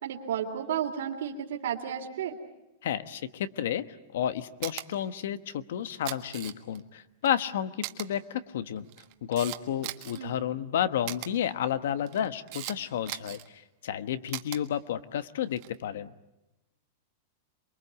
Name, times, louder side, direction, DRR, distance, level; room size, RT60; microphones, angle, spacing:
voice 1, 0.0-2.4 10.1-10.4, right 9 dB, 75° right, -1 dB, 3.1 m, -32 dB
voice 2, 2.8-3.8 4.1-8.9 9.2-16.1, left 10 dB, 75° left, 13 dB, 1.2 m, -31 dB
Camera, 4.6-4.9 5.9-6.8 7.2-7.3 7.8-8.1 8.8-10.2 11.1-11.3 12.0-12.8 13.1-13.5 14.3-14.6 15.5-15.8, right 19 dB, 40° right, 1.5 m, -38 dB
28.0 x 22.5 x 8.2 m, 0.95 s
supercardioid pair, 170°, 0 cm